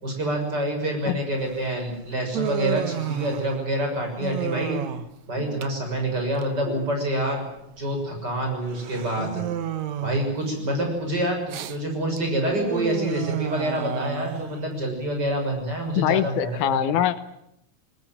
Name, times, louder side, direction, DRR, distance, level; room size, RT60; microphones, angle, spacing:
voice 1, 0.0-4.8 5.3-7.4 7.8-9.4 10.0-16.8, right 1 dB, 30° right, 3 dB, 6.8 m, -27 dB
Human voice, 1.4-16.6, right 10 dB, 70° right, 2.4 m, -33 dB
voice 2, 16.0-17.2, left 11 dB, 85° left, 13 dB, 2.5 m, -23 dB
21.0 x 20.0 x 9.1 m, 0.78 s
omnidirectional pair, 3.4 m